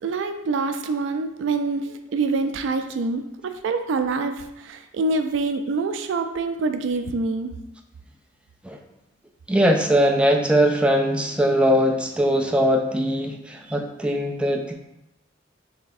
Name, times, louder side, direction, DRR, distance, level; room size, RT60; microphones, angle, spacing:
voice 1, 0.0-7.6 13.7-13.8, right 3 dB, 80° right, 7 dB, 0.3 m, -26 dB
voice 2, 9.5-14.7, equal, 5° right, 2 dB, 0.4 m, -21 dB
3.5 x 3.2 x 4.0 m, 0.91 s
head